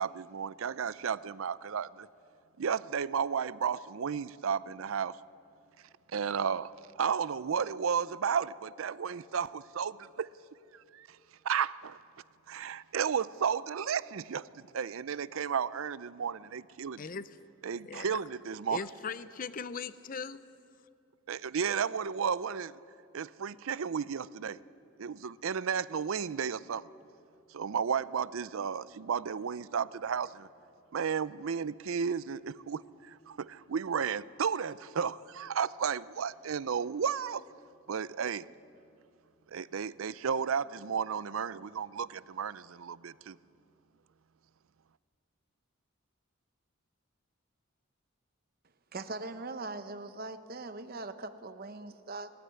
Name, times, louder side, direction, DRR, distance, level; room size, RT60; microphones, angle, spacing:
voice 1, 0.0-2.1 2.6-5.2 6.1-6.7 7.0-10.3 10.7-11.2 11.4-12.0 12.5-17.1 17.6-18.8 21.3-22.8 23.1-24.6 25.0-26.9 27.5-30.5 30.9-37.4 37.9-38.5 39.5-43.4, right 7 dB, 75° right, 0.5 m, -33 dB
voice 2, 17.0-17.3 17.7-18.2 18.7-20.4, left 5 dB, 40° left, 0.5 m, -39 dB
voice 3, 48.9-52.3, right 3 dB, 45° right, 0.8 m, -41 dB
19.0 x 15.0 x 9.6 m
head